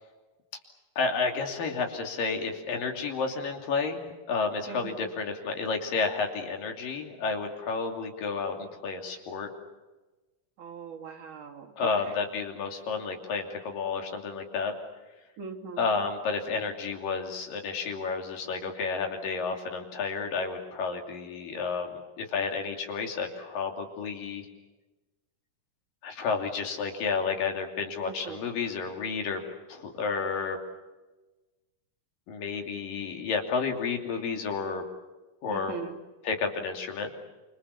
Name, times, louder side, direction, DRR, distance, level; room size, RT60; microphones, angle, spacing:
voice 1, 1.0-4.0 4.3-9.5 11.8-14.7 15.8-24.5 26.0-29.4 29.7-30.6 32.3-34.8 35.4-35.7 36.2-37.1, left 4 dB, 80° left, 3 dB, 4.7 m, -31 dB
voice 2, 4.7-5.1 10.6-12.1 15.4-16.1 28.1-28.4 35.5-36.0, right 6 dB, 65° right, 1 dB, 4.1 m, -41 dB
28.0 x 26.0 x 7.1 m, 1.2 s
omnidirectional pair, 3.9 m